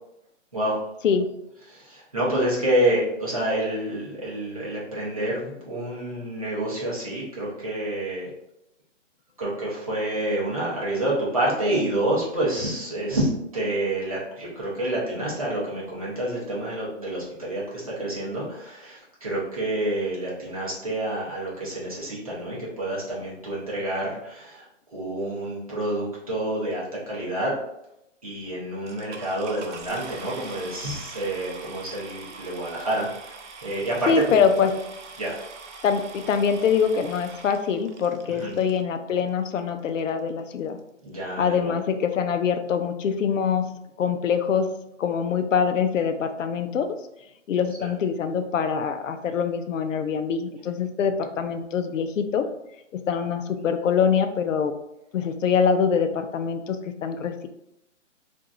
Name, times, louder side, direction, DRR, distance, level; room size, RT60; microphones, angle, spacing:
voice 1, 1.7-8.3 9.4-24.7 24.9-27.5 28.2-34.1 35.2-35.4 38.4-38.5 41.0-41.7 47.8-47.9, right 1 dB, 30° right, -7 dB, 0.7 m, -28 dB
sound 1, 28.9-38.8 39.6-39.7 40.2-40.3 40.5-40.8, right 4 dB, 70° right, 0.5 m, -43 dB
voice 2, 34.1-34.7 35.8-40.8 41.4-44.7 45.0-47.0 47.5-52.5 52.9-54.7 55.1-57.5, left 6 dB, 80° left, 8 dB, 0.5 m, -24 dB
2.9 x 2.5 x 2.3 m, 0.84 s
hypercardioid pair, 180°, 38 cm